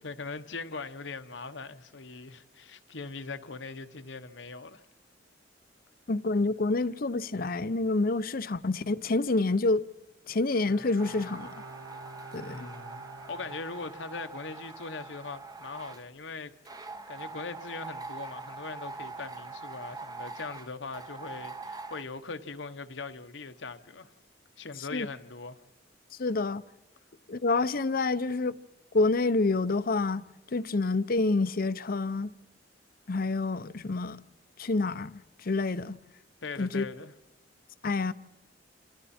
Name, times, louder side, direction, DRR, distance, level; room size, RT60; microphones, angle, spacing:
voice 1, 0.0-4.8 12.4-24.1 24.6-25.6 36.4-37.1, left 4 dB, 85° left, 1.1 m, -41 dB
voice 2, 6.1-9.8 10.3-11.5 12.3-12.7 24.9-25.1 26.2-26.6 27.3-28.5 28.9-30.2 30.5-32.3 33.1-34.2 34.6-36.0 36.6-36.9 37.8-38.1, left 3 dB, 55° left, 0.7 m, -28 dB
Bowed string instrument, 10.7-14.4 14.7-14.8, right 4 dB, 85° right, 1.1 m, -49 dB
sound 1, 11.0-16.1 16.7-22.0, right 3 dB, 20° right, 0.9 m, -43 dB
28.5 x 27.5 x 4.4 m
head